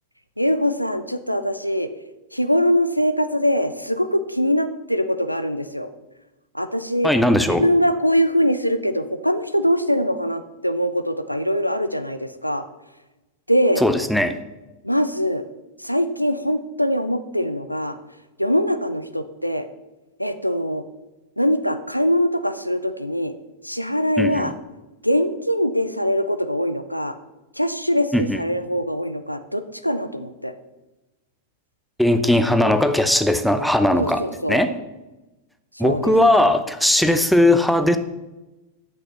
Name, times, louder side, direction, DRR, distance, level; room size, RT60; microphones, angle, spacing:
voice 1, 0.4-1.9 2.3-5.9 6.5-7.1 7.6-12.6 13.5-13.8 14.8-15.4 15.8-18.0 18.4-19.7 20.2-20.8 21.4-23.3 23.6-24.5 25.0-27.1 27.6-30.5 34.0-34.6 35.8-36.1, equal, 90° left, 11 dB, 0.5 m, -22 dB
voice 2, 7.0-7.7 13.8-14.3 24.2-24.5 28.1-28.4 32.0-34.2 34.5-34.7 35.8-38.0, left 1 dB, ahead, 9 dB, 0.7 m, -18 dB
7.9 x 6.3 x 7.1 m, 1.1 s
figure-of-eight pair, 90°, 0 cm